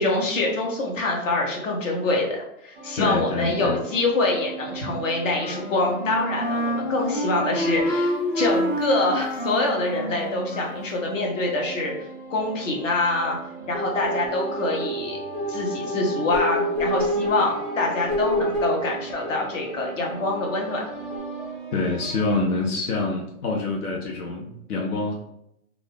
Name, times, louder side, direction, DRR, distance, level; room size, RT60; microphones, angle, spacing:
voice 1, 0.0-11.9 12.3-13.4 13.7-15.2 15.5-20.8, left 2 dB, 60° left, -1 dB, 1.0 m, -25 dB
sound 1, 2.7-22.4, right 3 dB, 40° right, 0.4 m, -39 dB
voice 2, 2.9-3.8 21.7-25.1, left 3 dB, 85° left, -1 dB, 0.7 m, -26 dB
Wind instrument woodwind instrument, 5.2-10.9, equal, 35° left, 0.5 m, -28 dB
sound 2, 13.7-20.1 21.1-21.2, equal, 15° left, 1.0 m, -28 dB
2.5 x 2.4 x 3.4 m, 0.79 s
hypercardioid pair, 170°, 44 cm